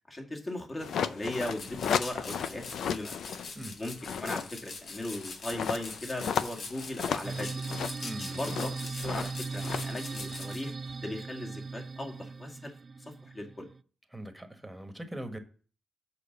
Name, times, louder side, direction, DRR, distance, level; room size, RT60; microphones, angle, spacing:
voice 1, 0.1-3.3 3.8-7.6 8.3-10.7 11.0-12.7 13.1-13.7, left 1 dB, 30° left, 2.0 m, -38 dB
sound 1, 0.8-3.5 3.9-10.9, left 7 dB, 85° left, 0.4 m, -35 dB
sound 2, 1.4-10.6, left 3 dB, 65° left, 1.5 m, -44 dB
sound 3, 7.2-13.8, right 4 dB, 45° right, 0.3 m, -38 dB
voice 2, 8.0-8.4 14.1-15.4, right 1 dB, 10° right, 1.5 m, -41 dB
6.8 x 4.8 x 6.5 m
cardioid pair, 70°, 0 cm